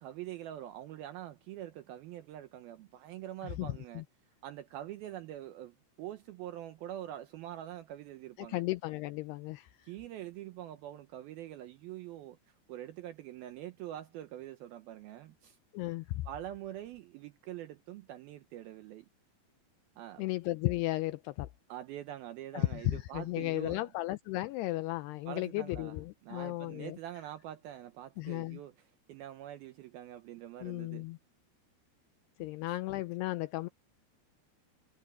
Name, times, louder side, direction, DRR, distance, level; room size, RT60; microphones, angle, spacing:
voice 1, 0.0-4.0 4.4-8.6 9.8-15.6 16.3-19.1 20.0-20.2 21.7-23.8 25.3-26.0 26.2-28.7 29.1-31.0, right 12 dB, 75° right, 2.4 m, -45 dB
voice 2, 3.4-4.0 8.4-9.9 15.7-16.3 20.2-21.5 22.5-27.0 28.2-28.6 30.6-31.2 32.4-33.7, left 18 dB, 80° left, 2.5 m, -35 dB
omnidirectional pair, 5.0 m